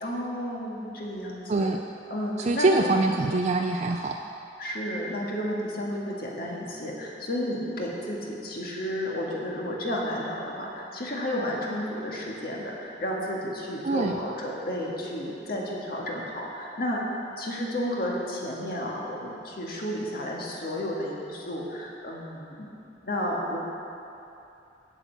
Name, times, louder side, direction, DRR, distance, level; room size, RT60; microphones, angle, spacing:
voice 1, 0.0-1.7 2.1-3.1 4.6-17.0 17.4-22.7 23.0-23.6, equal, 55° left, -3 dB, 1.8 m, -32 dB
voice 2, 2.4-4.2 13.8-14.2, right 2 dB, 40° right, 3 dB, 0.4 m, -24 dB
8.2 x 7.6 x 8.2 m, 2.8 s
head